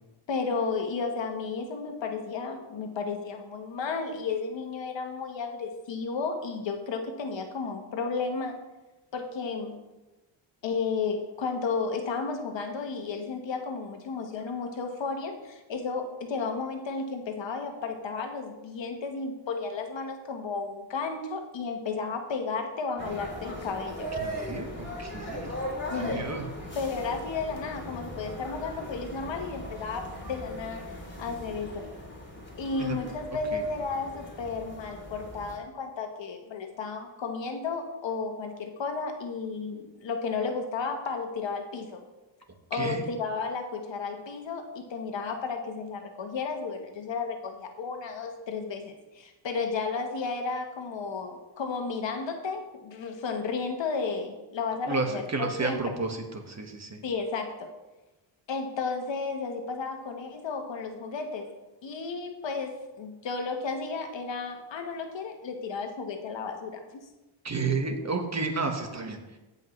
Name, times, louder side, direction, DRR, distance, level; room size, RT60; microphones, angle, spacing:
voice 1, 0.3-8.6 9.1-9.8 10.6-24.1 25.9-26.2 26.7-31.9 32.6-42.0 42.7-55.8 57.0-57.7 58.5-61.5 61.8-66.8, left 4 dB, 65° left, 5 dB, 1.3 m, -33 dB
sound 1, 23.0-35.6, equal, 20° left, 2.9 m, -39 dB
voice 2, 24.2-25.5 26.0-26.5 32.8-33.0 33.5-33.6 42.7-43.0 54.9-57.0 67.4-69.2, right 3 dB, 35° right, 4 dB, 1.4 m, -31 dB
15.5 x 5.6 x 3.2 m, 1.1 s
cardioid pair, 80°, 48 cm